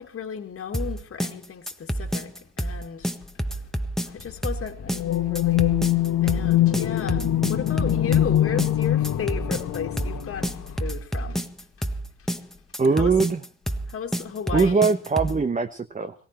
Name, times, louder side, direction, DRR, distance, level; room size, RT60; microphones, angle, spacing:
voice 1, 0.0-3.1 3.5-3.6 4.0-5.8 6.2-11.5 12.2-12.3 13.0-13.1 13.9-14.9, left 7 dB, 50° left, 2.3 m, -34 dB
sound 1, 0.7-15.4, right 1 dB, ahead, 1.4 m, -29 dB
sound 2, 4.9-10.9, left 13 dB, 75° left, 2.0 m, -23 dB
voice 2, 12.8-13.4 14.5-16.1, right 4 dB, 25° right, 1.1 m, -21 dB
19.0 x 17.0 x 4.5 m
cardioid pair, 90°, 30 cm